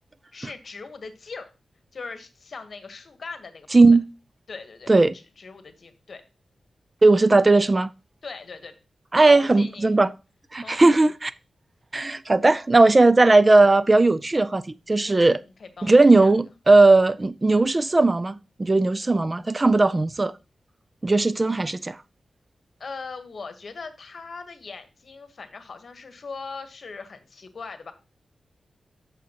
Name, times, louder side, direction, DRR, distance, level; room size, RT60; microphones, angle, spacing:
voice 1, 0.3-1.5 1.9-3.8 4.5-6.2 8.2-8.7 9.2-9.9 10.6-11.1 15.0-16.3 22.8-27.9, left 4 dB, 60° left, 1.1 m, -40 dB
voice 2, 3.7-4.1 4.9-5.1 7.0-7.9 9.1-10.1 10.5-11.3 11.9-15.4 15.8-20.3 21.0-22.0, right 2 dB, 25° right, 0.3 m, -17 dB
8.4 x 6.5 x 2.9 m
wide cardioid pair, 95°, 0 cm